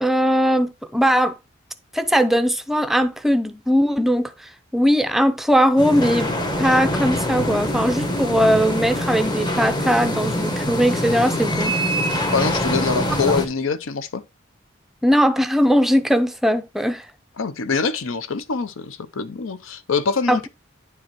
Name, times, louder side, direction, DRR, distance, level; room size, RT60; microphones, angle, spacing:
voice 1, 0.0-1.3 1.9-6.3 6.6-11.8 15.0-17.1 20.3-20.4, equal, ahead, 0.5 m, -19 dB
sound 1, 5.8-13.5, equal, 20° left, 0.9 m, -24 dB
voice 2, 12.3-14.2 17.4-20.5, left 5 dB, 75° left, 0.6 m, -24 dB
9.6 x 4.7 x 3.0 m
head